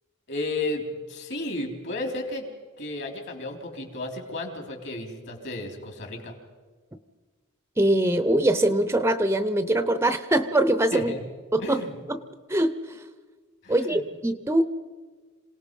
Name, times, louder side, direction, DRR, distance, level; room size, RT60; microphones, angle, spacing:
voice 1, 0.3-2.5 2.8-6.3 10.9-11.2 11.6-11.9 13.6-14.0, left 2 dB, 55° left, 3 dB, 3.6 m, -33 dB
voice 2, 7.8-11.1 11.5-11.8 12.1-12.2 12.5-13.0 13.7-14.6, right 1 dB, 10° right, 11 dB, 0.6 m, -23 dB
27.0 x 18.0 x 5.4 m, 1.4 s
head